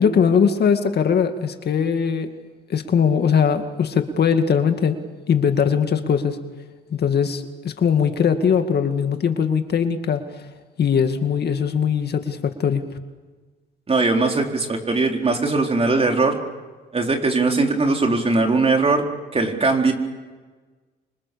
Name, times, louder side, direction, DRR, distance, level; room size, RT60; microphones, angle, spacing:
voice 1, 0.0-2.3 2.7-5.0 5.3-6.4 6.9-10.5 10.8-12.8, left 7 dB, 55° left, 7 dB, 2.1 m, -20 dB
voice 2, 13.9-16.4 16.9-19.0 19.3-19.9, right 3 dB, 30° right, 2 dB, 4.3 m, -20 dB
28.0 x 25.5 x 7.0 m, 1.3 s
cardioid pair, 90°, 20 cm